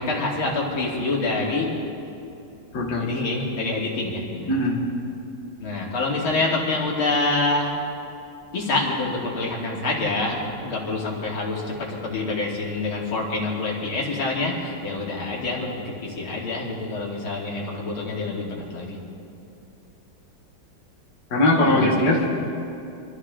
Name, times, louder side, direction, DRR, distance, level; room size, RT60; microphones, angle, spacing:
voice 1, 0.0-1.7 3.0-4.5 5.6-7.7 8.5-19.0 21.7-22.1, left 3 dB, 80° left, -4 dB, 3.4 m, -26 dB
voice 2, 4.5-4.8 21.3-22.3, left 1 dB, 55° left, -3 dB, 2.2 m, -20 dB
25.5 x 13.5 x 3.8 m, 2.7 s
omnidirectional pair, 2.2 m